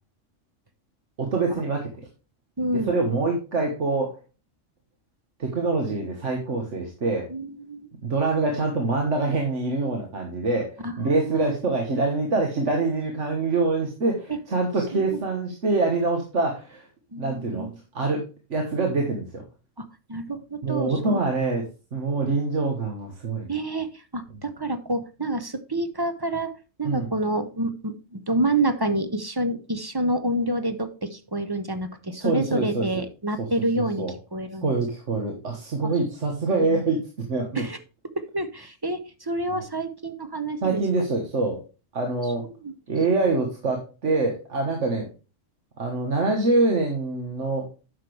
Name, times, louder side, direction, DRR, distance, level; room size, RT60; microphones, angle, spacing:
voice 1, 1.2-2.1 2.8-4.2 5.4-7.3 8.0-16.9 17.2-17.7 17.9-19.4 20.6-21.7 21.9-23.5 26.8-27.1 32.1-33.0 33.4-33.5 33.8-34.1 34.6-37.0 37.3-37.6 39.5-39.6 40.6-41.6 41.9-42.5 42.9-45.1 45.8-47.7, right 3 dB, 70° right, 2 dB, 1.7 m, -25 dB
voice 2, 2.6-2.9 7.3-7.9 10.8-11.5 14.9-15.2 17.1-17.7 19.8-21.2 23.5-26.5 26.8-34.0 34.3-34.8 35.8-35.9 36.6-36.8 37.6-37.8 38.1-40.8 42.6-42.7 44.9-45.1, right 1 dB, 25° right, 9 dB, 0.6 m, -28 dB
9.5 x 6.2 x 3.3 m, 0.32 s
omnidirectional pair, 1.3 m